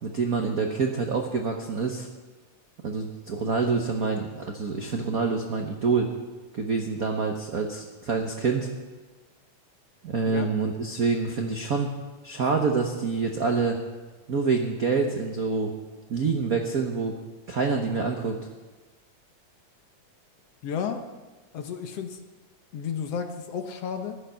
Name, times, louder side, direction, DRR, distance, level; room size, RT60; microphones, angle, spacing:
voice 1, 0.0-2.1 2.8-6.1 6.5-8.7 10.0-11.9 12.2-13.8 14.3-15.7 16.1-17.1 17.5-18.4, right 4 dB, 80° right, 3 dB, 0.8 m, -26 dB
voice 2, 20.6-21.0 21.5-22.2 22.7-24.2, left 7 dB, 65° left, 6 dB, 1.9 m, -32 dB
15.5 x 12.0 x 5.7 m, 1.3 s
omnidirectional pair, 3.3 m